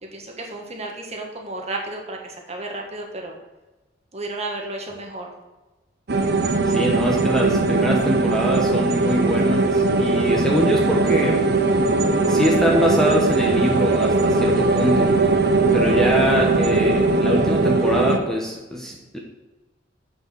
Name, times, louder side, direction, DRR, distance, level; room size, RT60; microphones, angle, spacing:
voice 1, 0.0-3.4 4.1-5.3, right 2 dB, 35° right, 1 dB, 1.7 m, -32 dB
sound 1, 6.1-18.2, right 3 dB, 60° right, 0.9 m, -19 dB
voice 2, 6.7-11.5 12.3-15.2 15.7-19.2, equal, 5° left, -1 dB, 1.1 m, -24 dB
7.8 x 6.1 x 6.2 m, 1.1 s
head